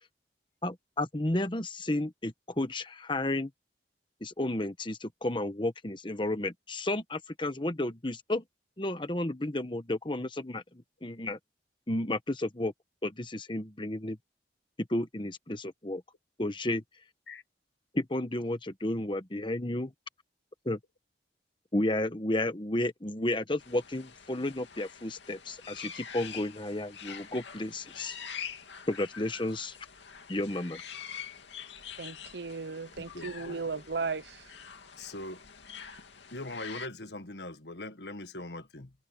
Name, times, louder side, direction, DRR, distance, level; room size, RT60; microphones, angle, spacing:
voice 1, 0.6-3.5 4.2-8.4 8.8-11.4 11.9-12.7 13.0-14.2 14.9-16.0 16.4-16.8 17.9-19.9 20.6-20.8 21.7-28.2 28.9-29.8 30.3-30.8, left 1 dB, 25° left, 1.2 m, -32 dB
sound 1, 23.6-36.9, left 7 dB, 90° left, 2.5 m, -45 dB
voice 2, 32.0-34.5, right 4 dB, 75° right, 1.0 m, -36 dB
voice 3, 33.1-33.6 35.0-35.4 36.3-38.9, left 2 dB, 75° left, 1.7 m, -41 dB
head